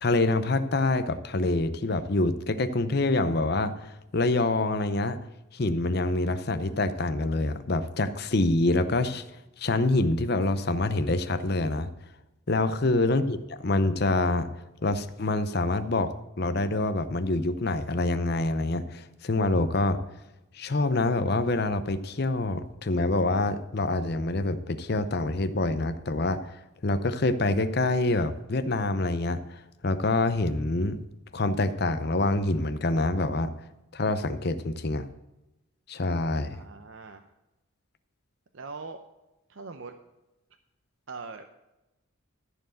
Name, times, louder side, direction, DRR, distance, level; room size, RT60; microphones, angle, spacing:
voice 1, 0.0-5.2 5.5-9.2 9.6-11.9 12.5-14.5 14.8-20.0 20.5-26.5 26.8-31.0 31.3-33.5 33.9-35.1 35.9-36.6, left 2 dB, 50° left, 11 dB, 0.7 m, -26 dB
voice 2, 36.5-37.2 38.5-39.0 39.5-40.0 41.1-41.5, right 4 dB, 65° right, 6 dB, 0.6 m, -42 dB
14.0 x 4.7 x 7.6 m, 0.97 s
head